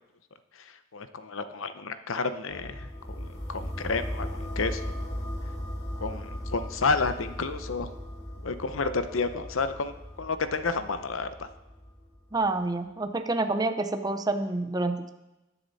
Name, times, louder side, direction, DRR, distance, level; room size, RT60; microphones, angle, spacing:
voice 1, 0.9-2.9 3.2-5.0 6.0-7.9 8.4-9.9 10.2-11.5, left 4 dB, 80° left, 10 dB, 0.8 m, -30 dB
sound 1, 2.5-12.4, equal, 15° left, 2.1 m, -37 dB
voice 2, 12.3-15.1, right 2 dB, 20° right, 9 dB, 0.6 m, -28 dB
19.0 x 7.0 x 4.1 m, 1.0 s
head